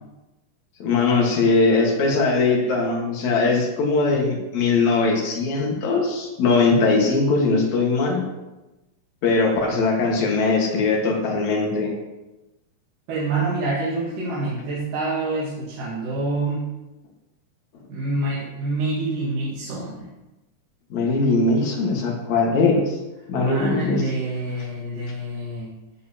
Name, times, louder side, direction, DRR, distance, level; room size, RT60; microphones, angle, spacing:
voice 1, 0.8-8.2 9.2-11.9 20.9-23.0 23.3-24.0, left 3 dB, 65° left, 0 dB, 2.8 m, -20 dB
voice 2, 13.1-16.6 17.9-20.1 23.4-25.7, right 2 dB, 90° right, -7 dB, 3.3 m, -26 dB
13.0 x 7.7 x 2.9 m, 1.0 s
omnidirectional pair, 3.7 m